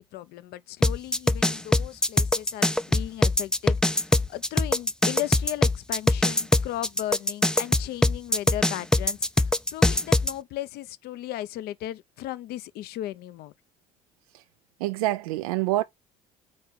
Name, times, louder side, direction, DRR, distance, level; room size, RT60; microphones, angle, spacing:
voice 1, 0.0-13.5, left 14 dB, 60° left, 0.7 m, -36 dB
sound 1, 0.8-10.3, left 1 dB, 5° left, 0.5 m, -22 dB
voice 2, 14.8-15.8, right 16 dB, 75° right, 0.5 m, -26 dB
5.3 x 4.5 x 5.8 m
hypercardioid pair, 60°, 18 cm